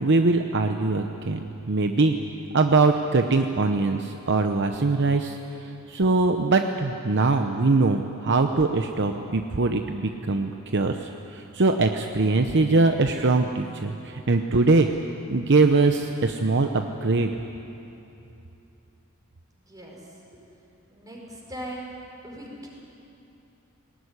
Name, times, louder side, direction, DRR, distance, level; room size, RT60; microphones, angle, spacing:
voice 1, 0.0-2.1 2.5-14.9 15.3-17.3, right 3 dB, 55° right, 5 dB, 0.8 m, -22 dB
voice 2, 19.7-20.0 20.3-20.4 20.9-22.0 22.2-22.7, right 1 dB, 15° right, -2 dB, 5.3 m, -39 dB
19.5 x 19.0 x 9.8 m, 2.9 s
head